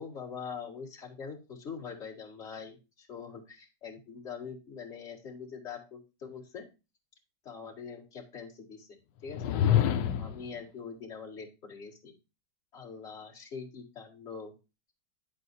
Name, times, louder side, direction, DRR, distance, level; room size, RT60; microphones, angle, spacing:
voice 1, 0.0-6.7 7.4-8.9 9.2-9.5 10.0-12.1 12.7-14.5, left 6 dB, 40° left, -4 dB, 2.3 m, -43 dB
sound 1, 9.3-10.5, left 10 dB, 80° left, 1.2 m, -26 dB
9.2 x 7.5 x 2.7 m, 0.29 s
omnidirectional pair, 1.9 m